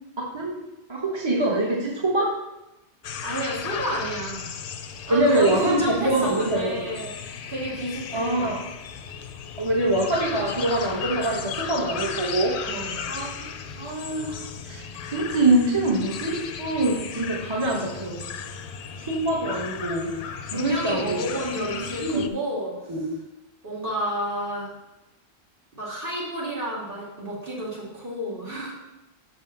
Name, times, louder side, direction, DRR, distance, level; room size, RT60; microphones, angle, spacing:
voice 1, 0.2-0.6 0.9-2.3 5.1-6.8 8.1-8.6 9.6-12.6 13.1-13.3 13.8-18.2 19.1-20.2 20.5-21.2 21.7-22.3 22.9-23.1, right 1 dB, 25° right, -3 dB, 1.1 m, -24 dB
sound 1, 3.0-22.3, left 7 dB, 60° left, 0.7 m, -35 dB
voice 2, 3.2-4.5 5.1-8.5 12.6-13.0 20.5-22.7 23.6-24.7 25.7-28.7, equal, 55° right, -6 dB, 2.8 m, -30 dB
6.3 x 5.5 x 5.9 m, 0.95 s
omnidirectional pair, 1.1 m